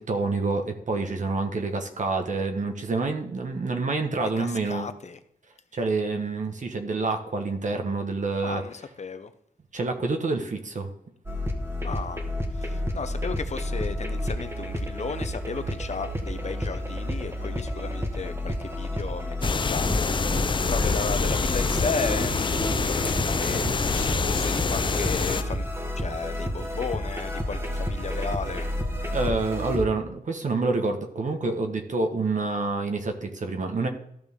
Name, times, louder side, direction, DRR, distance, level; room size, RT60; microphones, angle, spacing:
voice 1, 0.0-4.9 5.7-8.6 9.7-10.9 29.1-33.9, right 3 dB, 60° right, 4 dB, 1.3 m, -27 dB
voice 2, 4.2-5.2 8.4-9.3 11.8-12.2 12.5-20.3 20.7-23.7 23.9-25.6 26.0-28.7, left 5 dB, 50° left, 11 dB, 0.8 m, -34 dB
sound 1, 11.3-29.8, equal, 15° right, 1.6 m, -30 dB
sound 2, 19.4-25.4, left 5 dB, 35° left, 0.4 m, -26 dB
13.5 x 6.2 x 3.6 m, 0.72 s
wide cardioid pair, 120°, 15 cm